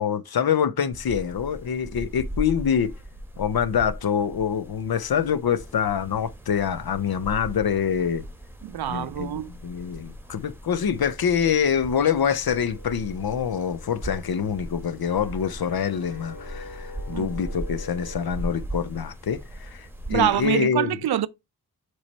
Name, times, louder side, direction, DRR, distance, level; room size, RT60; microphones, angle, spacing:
voice 1, 0.0-2.9 3.4-8.2 8.9-21.0, left 7 dB, 75° left, 0.7 m, -25 dB
sound 1, 0.9-20.5, equal, 5° right, 1.2 m, -38 dB
voice 2, 8.6-9.5 17.1-17.3 20.1-21.3, right 11 dB, 80° right, 0.5 m, -25 dB
sound 2, 12.5-18.7, left 2 dB, 60° left, 2.5 m, -45 dB
7.2 x 3.1 x 4.2 m
cardioid pair, 50°, 37 cm